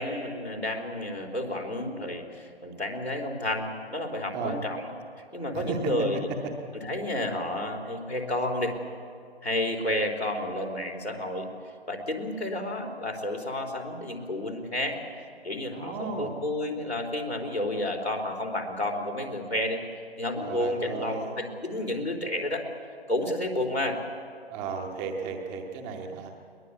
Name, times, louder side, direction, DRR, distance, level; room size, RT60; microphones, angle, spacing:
voice 1, 0.0-4.8 5.3-6.3 6.7-8.7 9.4-11.5 11.9-15.0 15.4-19.8 20.2-22.6 23.1-24.0, left 1 dB, 90° left, 1 dB, 4.2 m, -31 dB
voice 2, 5.5-5.9 15.7-16.3 20.4-21.3 24.5-26.3, right 5 dB, 5° right, 3 dB, 0.6 m, -34 dB
22.0 x 20.0 x 8.4 m, 2.3 s
figure-of-eight pair, 140°, 31 cm